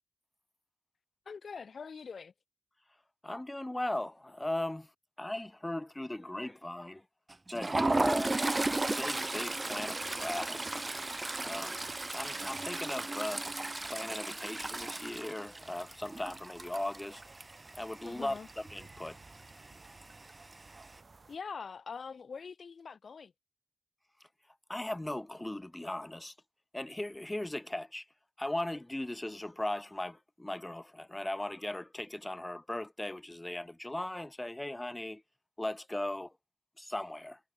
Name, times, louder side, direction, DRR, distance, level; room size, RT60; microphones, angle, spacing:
voice 1, 1.2-2.3 18.0-18.5 21.3-23.3, left 5 dB, 85° left, 1.6 m, -43 dB
voice 2, 3.2-4.9 5.2-7.0 7.5-8.4 8.8-10.7 11.4-11.8 12.1-13.4 13.9-17.2 17.8-19.2 24.7-26.3 26.7-28.0 28.4-35.2 35.6-36.3 36.8-37.4, left 1 dB, 20° left, 1.3 m, -38 dB
Toilet flush, 7.3-18.1 18.4-18.6 18.9-19.1 20.0-20.5, right 2 dB, 35° right, 0.9 m, -34 dB
sound 1, 15.5-21.4, right 3 dB, 60° right, 4.0 m, -57 dB
cardioid pair, 50°, 0 cm